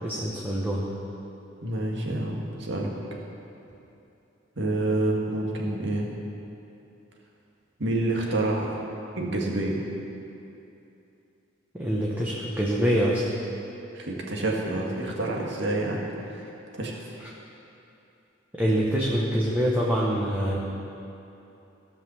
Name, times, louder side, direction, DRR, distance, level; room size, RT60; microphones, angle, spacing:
voice 1, 0.0-0.8 11.7-13.2 18.5-20.6, equal, 10° right, -5 dB, 1.1 m, -25 dB
voice 2, 1.6-2.9 4.6-6.1 7.8-8.7 9.2-9.8 13.9-16.0 16.3-17.1, right 2 dB, 65° right, -2 dB, 1.9 m, -28 dB
16.0 x 5.6 x 7.0 m, 2.8 s
head